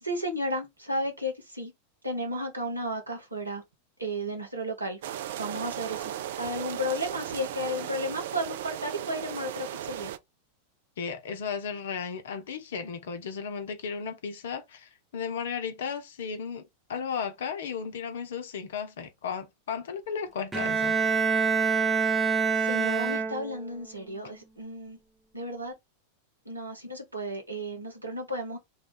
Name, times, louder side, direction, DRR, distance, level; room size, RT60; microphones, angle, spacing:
voice 1, 0.0-1.7 2.0-3.6 4.0-5.0 5.4-6.1 6.4-10.1 22.6-25.0 25.3-25.7 26.4-28.6, equal, 85° right, 1.1 m, -33 dB
sound 1, 5.0-10.2, right 11 dB, 55° right, 0.4 m, -36 dB
voice 2, 11.0-21.0, left 6 dB, 60° left, 0.6 m, -35 dB
Bowed string instrument, 20.5-23.7, right 5 dB, 10° right, 0.6 m, -26 dB
3.5 x 2.4 x 3.9 m
figure-of-eight pair, 90°, 0 cm